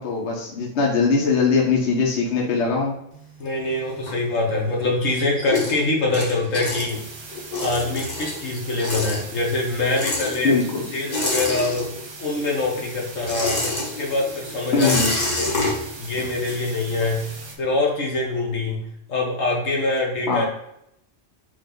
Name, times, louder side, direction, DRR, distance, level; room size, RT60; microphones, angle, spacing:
voice 1, 0.0-2.9 10.4-10.8 14.7-15.1 20.3-20.5, left 4 dB, 60° left, -2 dB, 1.2 m, -21 dB
sound 1, 3.1-4.7 5.1-12.3 12.5-17.2, left 2 dB, 35° left, 1.1 m, -28 dB
voice 2, 3.4-7.0 7.6-10.6 10.9-11.9 12.2-17.3 17.6-20.5, left 2 dB, 80° left, -1 dB, 1.4 m, -24 dB
sound 2, 6.9-17.6, right 3 dB, 30° right, 0.5 m, -40 dB
5.0 x 2.6 x 3.7 m, 0.74 s
omnidirectional pair, 1.3 m